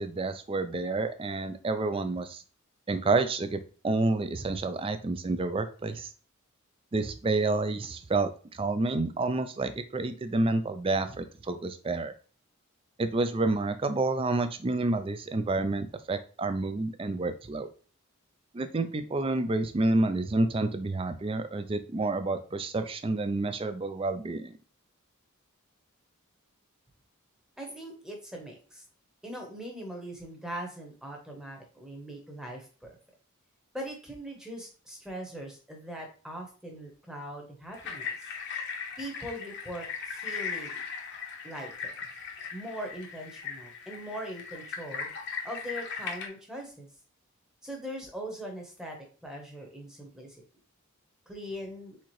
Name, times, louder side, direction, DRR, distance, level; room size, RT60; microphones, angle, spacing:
voice 1, 0.0-2.4 2.9-6.1 6.9-12.1 13.0-17.7 18.5-24.5, right 2 dB, 25° right, 9 dB, 0.4 m, -29 dB
voice 2, 27.6-28.8 29.2-32.9 33.7-38.3 39.0-40.8 41.4-42.0 42.5-45.1 45.4-46.9 47.6-50.4 51.3-52.0, equal, 5° right, 0 dB, 0.9 m, -41 dB
sound 1, 37.7-46.3, left 6 dB, 50° left, 0.8 m, -38 dB
4.3 x 3.7 x 3.1 m, 0.39 s
head